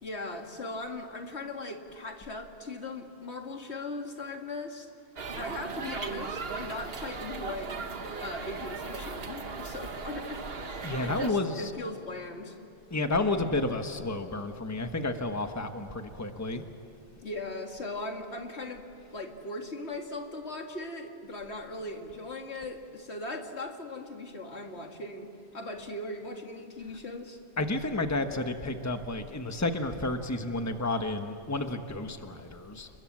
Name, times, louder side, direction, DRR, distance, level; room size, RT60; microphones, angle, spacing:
voice 1, 0.0-4.9 5.3-7.9 8.2-12.6 17.2-27.4, left 2 dB, 85° left, 3 dB, 2.4 m, -39 dB
sound 1, 5.2-11.3, right 4 dB, 65° right, 1.5 m, -38 dB
voice 2, 10.8-11.7 12.9-16.7 27.6-32.9, left 2 dB, 15° left, 6 dB, 1.3 m, -31 dB
30.0 x 22.0 x 7.5 m, 3.0 s
omnidirectional pair, 1.1 m